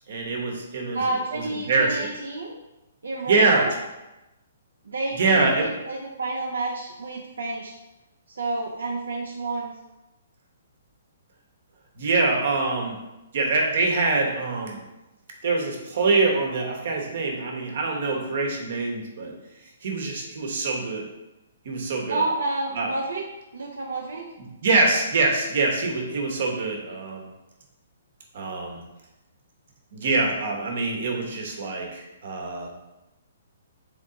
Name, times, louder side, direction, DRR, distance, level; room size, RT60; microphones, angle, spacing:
voice 1, 0.1-1.0 1.3-2.1 3.3-3.7 5.2-5.7 12.0-13.0 13.3-14.8 15.4-19.3 19.8-21.1 21.6-22.2 22.7-22.9 24.6-27.3 28.3-28.8 29.9-32.7, right 3 dB, 60° right, 1 dB, 1.0 m, -24 dB
voice 2, 0.9-2.5 3.0-3.8 4.8-7.7 8.3-9.7 22.1-23.2 23.5-24.3, right 2 dB, 85° right, -1 dB, 0.6 m, -30 dB
3.7 x 3.5 x 3.9 m, 0.99 s
hypercardioid pair, 150°, 0 cm